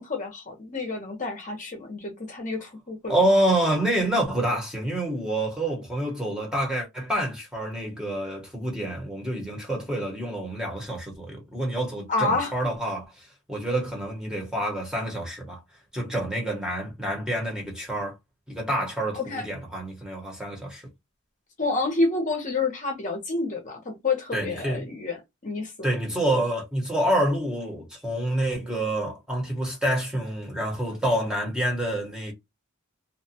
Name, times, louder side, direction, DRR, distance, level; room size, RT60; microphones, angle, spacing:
voice 1, 0.0-3.2 12.1-12.5 19.1-19.4 21.6-25.2 25.4-25.9, left 3 dB, 35° left, 0.8 m, -28 dB
voice 2, 3.1-15.6 15.9-18.1 18.5-20.8 24.3-24.9 25.8-32.3, right 1 dB, 5° right, 0.9 m, -27 dB
2.5 x 2.3 x 2.7 m
head